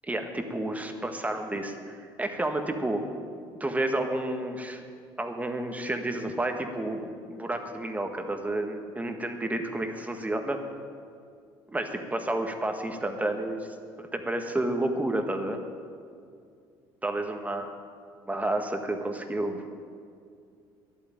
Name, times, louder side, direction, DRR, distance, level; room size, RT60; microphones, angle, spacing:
voice 1, 0.1-3.0 3.6-4.8 5.2-10.6 11.7-15.6 17.0-17.7 18.2-19.6, right 1 dB, 15° right, 5 dB, 1.6 m, -30 dB
11.5 x 8.9 x 9.0 m, 2.3 s
supercardioid pair, 80°, 11 cm